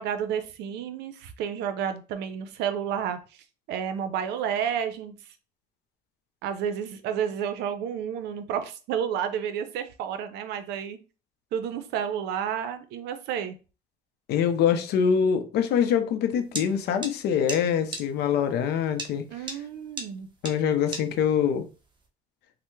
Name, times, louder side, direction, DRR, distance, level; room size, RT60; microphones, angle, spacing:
voice 1, 0.0-5.2 6.4-11.0 11.5-13.6 19.3-20.3, right 8 dB, 80° right, 0.5 m, -31 dB
voice 2, 14.3-19.3 20.4-21.7, left 8 dB, 75° left, 0.5 m, -24 dB
sound 1, 16.6-16.7 17.0-17.1 17.5-17.6 17.9-18.0 19.0-19.1 19.5-19.6 20.0-20.1 20.5-20.6 20.9-21.0, right 2 dB, 25° right, 0.6 m, -32 dB
3.3 x 2.1 x 3.1 m
cardioid pair, 110°, 17 cm